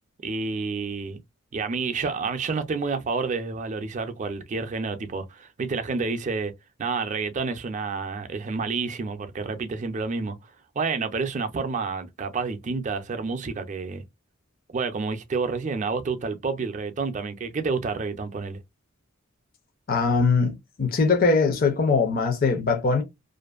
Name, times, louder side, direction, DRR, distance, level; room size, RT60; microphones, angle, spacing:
voice 1, 0.2-1.2 1.5-6.5 6.8-10.4 10.8-14.0 14.7-18.6, right 4 dB, 35° right, 0.4 m, -29 dB
voice 2, 19.9-23.0, left 4 dB, 45° left, 0.5 m, -21 dB
2.5 x 2.4 x 2.3 m
head